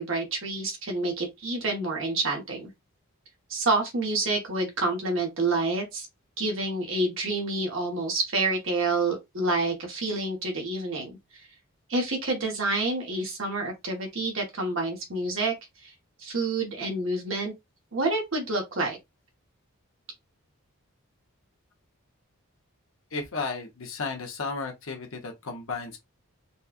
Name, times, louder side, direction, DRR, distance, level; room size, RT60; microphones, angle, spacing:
voice 1, 0.0-2.7 3.5-6.1 6.4-11.2 11.9-15.5 15.8-15.9 16.2-17.5 17.9-19.0, right 2 dB, 60° right, 1.2 m, -28 dB
voice 2, 23.1-26.0, left 4 dB, 65° left, 0.9 m, -34 dB
4.1 x 2.3 x 2.4 m
head